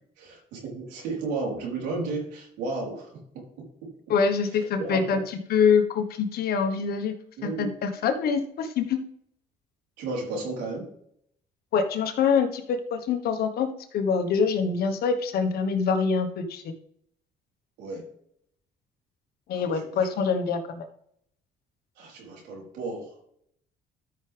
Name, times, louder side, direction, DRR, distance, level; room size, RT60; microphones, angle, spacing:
voice 1, 0.2-3.9 4.5-5.2 7.4-7.7 10.0-10.9 17.8-18.0 19.5-20.1 22.0-23.2, right 3 dB, 90° right, -2 dB, 4.2 m, -34 dB
voice 2, 4.1-5.2 5.5-7.1 7.6-9.0 11.7-13.7 13.9-16.6 19.5-20.8, left 6 dB, 65° left, 7 dB, 1.4 m, -25 dB
13.0 x 6.0 x 3.5 m, 0.68 s
cardioid pair, 110°, 17 cm